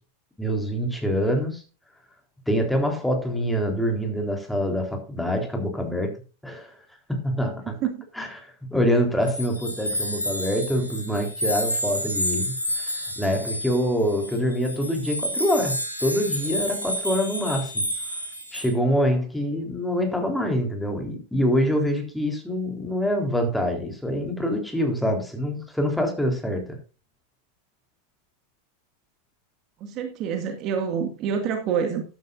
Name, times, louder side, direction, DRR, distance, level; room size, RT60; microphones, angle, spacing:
voice 1, 0.4-1.6 2.5-6.1 6.4-6.7 7.1-7.7 8.2-8.3 8.7-12.5 13.2-17.9 18.5-26.8, equal, 5° left, 3.8 m, -25 dB
voice 2, 7.7-8.1 29.8-32.0, right 7 dB, 35° right, 2.1 m, -27 dB
sound 1, 9.3-18.7, equal, 85° left, 3.2 m, -30 dB
14.0 x 12.0 x 2.6 m
figure-of-eight pair, 90°, 0 cm